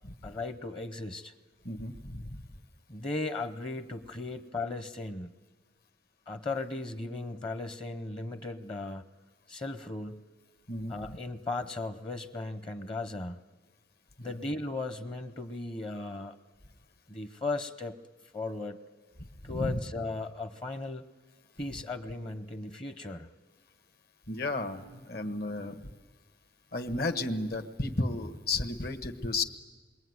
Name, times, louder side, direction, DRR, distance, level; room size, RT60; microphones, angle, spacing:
voice 1, 0.2-1.3 2.9-5.3 6.3-9.0 9.5-10.2 10.9-13.4 14.2-16.4 17.1-18.0 18.3-18.8 19.4-21.1 21.6-23.3, left 2 dB, 30° left, 10 dB, 0.8 m, -36 dB
voice 2, 1.6-2.4 10.7-11.2 14.2-14.3 19.2-19.7 24.3-25.8 26.7-29.4, left 2 dB, 55° left, 8 dB, 1.5 m, -33 dB
27.5 x 22.0 x 9.6 m, 1.4 s
head